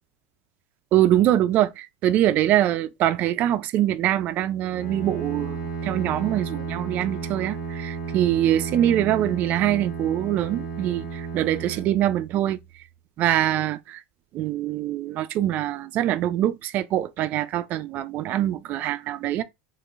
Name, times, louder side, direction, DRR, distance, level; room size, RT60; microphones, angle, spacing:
voice 1, 0.9-5.6 5.8-12.6 13.2-14.0 14.3-19.4, right 12 dB, 45° right, 0.3 m, -23 dB
Bowed string instrument, 4.7-12.7, right 5 dB, 80° left, 1.2 m, -33 dB
3.6 x 2.4 x 2.4 m
supercardioid pair, 105°, 4 cm